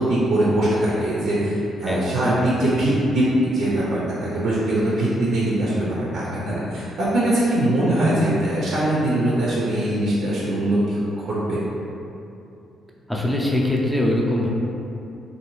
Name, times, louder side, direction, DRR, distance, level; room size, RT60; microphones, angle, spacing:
voice 1, 0.1-11.6, right 1 dB, 75° right, -7 dB, 0.5 m, -22 dB
voice 2, 1.9-2.3 13.1-14.5, left 1 dB, 5° left, -3 dB, 0.5 m, -22 dB
2.6 x 2.3 x 3.0 m, 2.7 s
cardioid pair, 90°, 0 cm